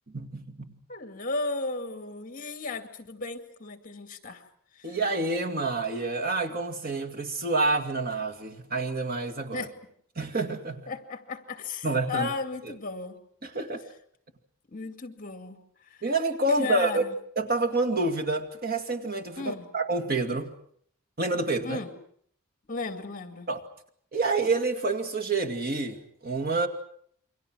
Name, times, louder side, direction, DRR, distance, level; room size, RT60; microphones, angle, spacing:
voice 1, 0.1-0.8 4.8-9.7 10.2-10.9 11.8-12.3 13.4-13.8 16.0-17.0 17.4-20.5 21.2-21.8 23.5-23.6 24.1-26.7, right 2 dB, 45° right, 2.4 m, -28 dB
voice 2, 0.9-4.4 4.7-5.0 9.5-9.7 10.9-13.2 14.7-15.6 15.8-16.0 16.6-17.1 19.4-19.7 21.6-21.9 22.7-23.5, left 3 dB, 40° left, 2.3 m, -35 dB
29.0 x 24.0 x 6.3 m
head